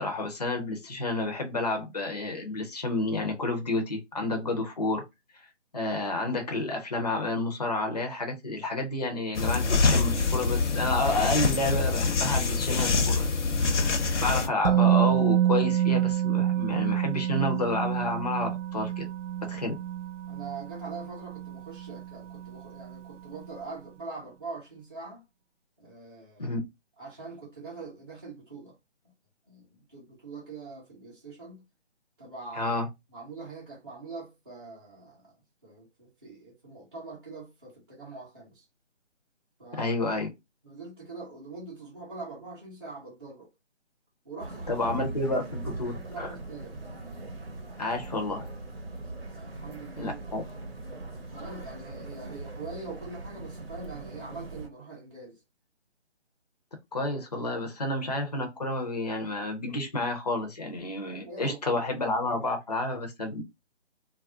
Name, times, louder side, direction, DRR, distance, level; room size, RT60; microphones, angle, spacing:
voice 1, 0.0-5.0 5.7-13.3 13.6-19.1 19.4-19.7 26.4-26.6 32.5-32.9 39.8-40.3 44.7-46.3 47.8-48.4 50.0-50.4 56.9-63.4, left 2 dB, 35° left, 0.5 m, -30 dB
sound 1, 9.3-14.5, left 4 dB, 75° left, 0.7 m, -25 dB
Musical instrument, 14.6-22.5 22.8-23.0, right 11 dB, 85° right, 0.5 m, -27 dB
voice 2, 20.3-25.2 25.8-26.6 27.0-28.8 29.5-31.7 32.2-32.8 33.1-35.3 35.6-38.6 39.6-39.9 40.6-43.5 44.2-45.0 45.6-46.8 49.3-50.2 51.3-55.4 61.0-61.8, right 3 dB, 20° right, 0.6 m, -43 dB
sound 2, 44.4-54.7, right 2 dB, 55° right, 0.8 m, -40 dB
2.3 x 2.0 x 3.5 m
figure-of-eight pair, 165°, 36 cm